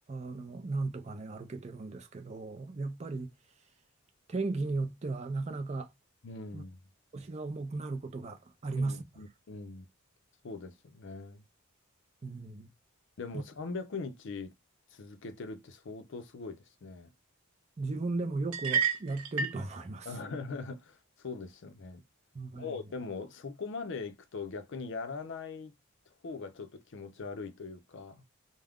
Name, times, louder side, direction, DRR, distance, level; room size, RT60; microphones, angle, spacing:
voice 1, 0.1-3.3 4.3-5.9 6.5-6.6 7.1-9.0 12.2-12.7 13.3-13.4 17.8-20.1 22.3-22.8, right 3 dB, 30° right, 0.4 m, -36 dB
voice 2, 6.2-6.8 8.8-9.9 10.4-11.4 13.2-14.5 14.9-17.1 20.1-22.0 22.5-25.7 26.2-28.2, left 4 dB, 60° left, 0.5 m, -41 dB
sound 1, 18.5-19.6, right 7 dB, 90° right, 0.6 m, -30 dB
2.3 x 2.1 x 3.4 m
head